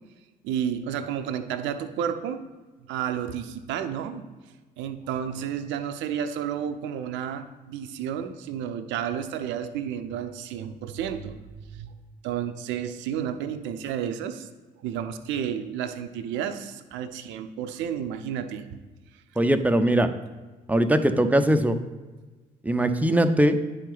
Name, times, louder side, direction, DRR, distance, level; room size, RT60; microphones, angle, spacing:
voice 1, 0.4-2.4 2.8-4.3 4.8-11.9 12.2-14.5 14.8-18.8, right 9 dB, 65° right, 9 dB, 0.7 m, -31 dB
voice 2, 19.4-20.1 20.7-21.8 22.6-23.6, right 1 dB, 5° right, 8 dB, 0.7 m, -21 dB
9.8 x 4.4 x 4.0 m, 1.3 s
figure-of-eight pair, 45°, 21 cm